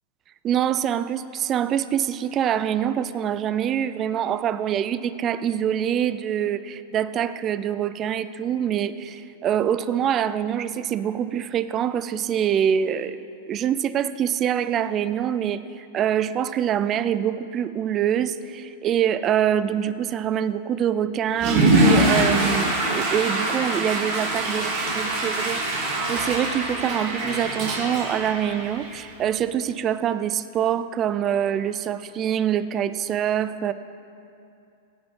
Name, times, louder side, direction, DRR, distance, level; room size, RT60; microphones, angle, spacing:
voice 1, 0.4-13.2 13.5-25.6 26.1-33.7, right 9 dB, 25° right, 14 dB, 0.4 m, -25 dB
Water / Toilet flush, 21.3-29.1, right 1 dB, 40° right, 3.2 m, -23 dB
16.5 x 8.9 x 5.4 m, 2.6 s
supercardioid pair, 160°, 0 cm